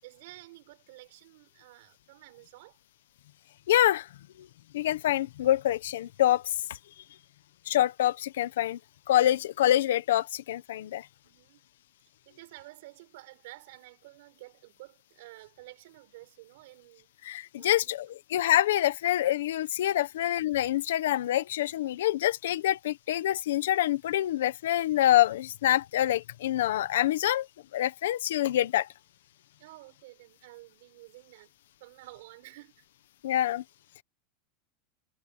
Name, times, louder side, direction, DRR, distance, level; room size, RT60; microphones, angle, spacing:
voice 1, 0.0-2.8 11.2-11.6 12.2-17.1 17.6-17.9 19.9-20.0 29.6-31.5 31.8-32.8, right 19 dB, 65° right, 7.3 m, -51 dB
voice 2, 3.7-4.1 4.4-4.5 4.7-6.5 7.7-8.8 9.1-11.1 17.2-27.5 27.7-28.9 33.2-33.6, left 13 dB, 90° left, 1.3 m, -26 dB
supercardioid pair, 160°, 0 cm